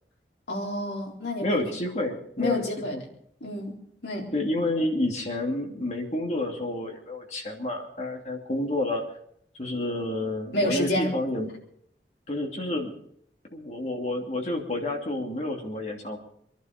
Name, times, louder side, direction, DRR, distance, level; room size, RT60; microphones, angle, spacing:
voice 1, 0.5-1.6 2.4-3.0 3.4-4.3 10.5-11.1, left 1 dB, 75° left, -1 dB, 4.1 m, -29 dB
voice 2, 1.4-2.6 2.9-3.0 4.3-9.0 9.6-11.5 12.3-12.9 13.5-16.2, left 1 dB, 40° left, 1 dB, 2.7 m, -29 dB
24.5 x 11.5 x 5.2 m, 0.70 s
head